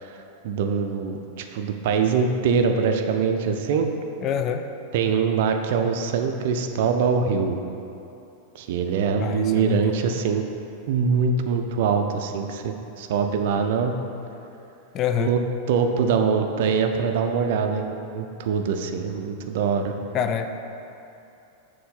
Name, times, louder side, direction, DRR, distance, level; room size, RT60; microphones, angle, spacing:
voice 1, 0.4-3.9 4.9-7.6 8.5-10.4 10.9-13.9 15.2-15.4 15.7-19.9, right 6 dB, 55° right, 5 dB, 0.5 m, -23 dB
voice 2, 4.2-4.7 9.2-9.9 14.9-15.3 20.1-20.5, left 9 dB, 35° left, 8 dB, 0.3 m, -26 dB
6.8 x 3.3 x 5.5 m, 2.8 s
figure-of-eight pair, 90°, 0 cm